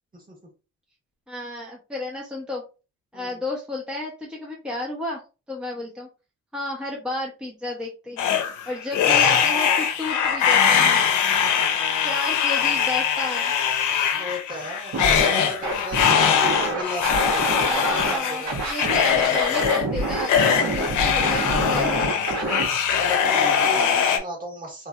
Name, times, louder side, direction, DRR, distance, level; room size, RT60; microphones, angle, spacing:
voice 1, 1.3-2.6 3.1-5.2 5.5-6.1 6.5-8.3 8.7-11.1 12.0-13.5 17.6-22.0 23.3-24.0, left 1 dB, 5° right, -2 dB, 0.8 m, -32 dB
sound 1, 8.2-24.2, left 7 dB, 85° left, 0.7 m, -22 dB
voice 2, 10.6-11.7 14.1-18.5 23.0-24.9, equal, 30° right, 0 dB, 1.5 m, -36 dB
Scratching (performance technique), 14.9-15.3 15.6-18.2 18.5-22.6, right 2 dB, 65° right, 1.5 m, -27 dB
3.0 x 2.7 x 2.4 m, 0.32 s
cardioid pair, 90°, 30 cm